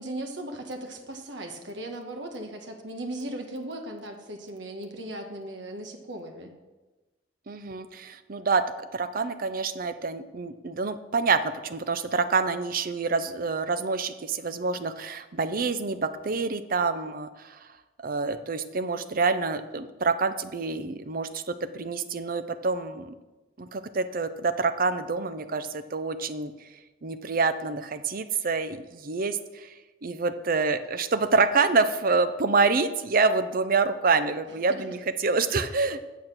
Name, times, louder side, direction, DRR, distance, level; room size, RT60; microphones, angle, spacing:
voice 1, 0.0-6.5, right 1 dB, 70° right, 3 dB, 1.4 m, -37 dB
voice 2, 7.5-8.6 8.9-17.6 18.0-23.1 23.6-26.5 27.0-29.7 30.0-36.0, right 4 dB, 50° right, 11 dB, 0.6 m, -27 dB
8.8 x 7.3 x 6.1 m, 1.2 s
head